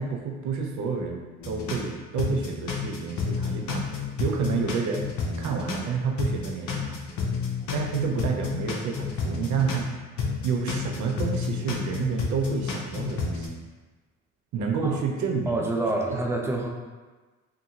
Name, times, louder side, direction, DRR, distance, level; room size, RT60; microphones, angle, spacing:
voice 1, 0.0-5.1 5.4-7.0 7.7-9.9 10.4-13.5 14.5-15.7 16.1-16.2, right 5 dB, 70° right, 2 dB, 0.5 m, -29 dB
sound 1, 1.4-1.9 2.2-5.9 6.2-9.9 10.2-13.5, left 6 dB, 70° left, 0.6 m, -30 dB
voice 2, 15.5-16.7, right 2 dB, 10° right, 0 dB, 0.3 m, -27 dB
2.5 x 2.4 x 2.7 m, 1.3 s
cardioid pair, 90°, 30 cm